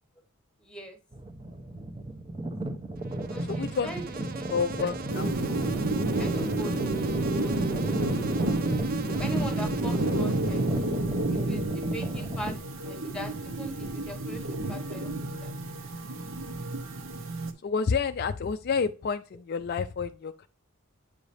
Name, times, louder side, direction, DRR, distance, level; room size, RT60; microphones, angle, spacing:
voice 1, 0.6-1.0 3.3-4.0 4.3-4.5 6.2-6.7 7.2-7.5 9.1-10.9 11.3-12.6 12.8-15.5, equal, 5° left, 6 dB, 1.2 m, -40 dB
sound 1, 1.1-12.6, right 2 dB, 25° right, 0.8 m, -35 dB
Insect, 3.0-11.2, right 4 dB, 45° right, 0.5 m, -41 dB
voice 2, 3.4-3.9 4.3-5.3 17.6-20.5, left 5 dB, 50° left, 9 dB, 0.4 m, -29 dB
sound 2, 5.1-17.5, right 2 dB, 65° right, 0.9 m, -30 dB
8.4 x 4.9 x 2.7 m, 0.33 s
head